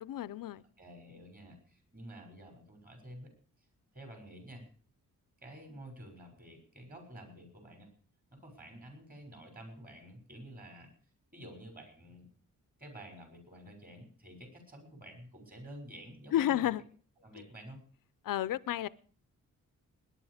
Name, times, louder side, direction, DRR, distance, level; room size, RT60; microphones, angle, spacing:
voice 1, 0.0-0.6 16.3-16.8 18.2-18.9, left 12 dB, 90° left, 0.6 m, -31 dB
voice 2, 0.8-3.3 3.9-4.7 5.4-7.9 8.3-10.9 11.3-12.3 12.8-16.7 17.2-17.8, right 1 dB, 25° right, 6.3 m, -50 dB
20.5 x 10.5 x 5.0 m
wide cardioid pair, 105°, 32 cm